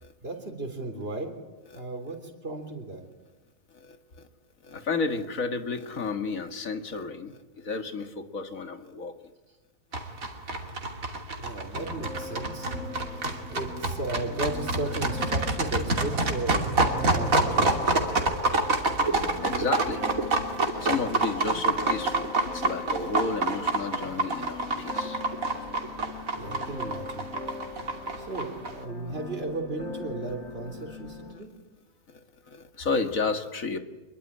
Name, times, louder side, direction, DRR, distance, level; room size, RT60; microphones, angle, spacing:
voice 1, 0.2-1.3 1.7-3.0 11.4-12.7 13.1-13.2 13.5-17.9 26.4-27.3 28.2-31.5, right 2 dB, 45° right, 3 dB, 3.7 m, -35 dB
voice 2, 4.6-9.1 13.3-13.5 19.1-20.0 20.5-25.2 27.4-27.6 31.3-31.4 32.1-32.2 32.5-33.8, left 4 dB, 75° left, 7 dB, 2.4 m, -32 dB
sound 1, 9.9-28.7, right 2 dB, 80° right, 3.1 m, -27 dB
sound 2, 11.7-31.3, left 3 dB, 55° left, 2.8 m, -41 dB
25.5 x 22.5 x 9.9 m, 1.1 s
omnidirectional pair, 1.4 m